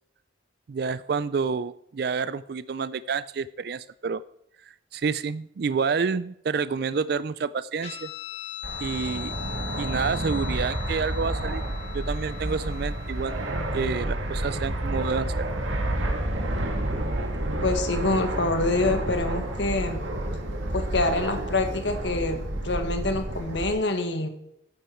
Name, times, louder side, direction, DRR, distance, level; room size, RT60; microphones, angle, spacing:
voice 1, 0.7-4.2 4.9-8.1 8.8-9.4 9.8-11.6 11.9-13.4 13.7-15.5, right 5 dB, 55° right, 16 dB, 0.4 m, -29 dB
Guitar, 7.8-14.7, left 11 dB, 30° left, 3.0 m, -40 dB
Fixed-wing aircraft airplane, 8.6-23.7, right 1 dB, 85° right, 2.0 m, -30 dB
voice 2, 17.6-20.0 20.7-22.4 22.6-24.3, left 2 dB, 65° left, 6 dB, 1.6 m, -26 dB
13.0 x 9.5 x 4.5 m, 0.77 s
head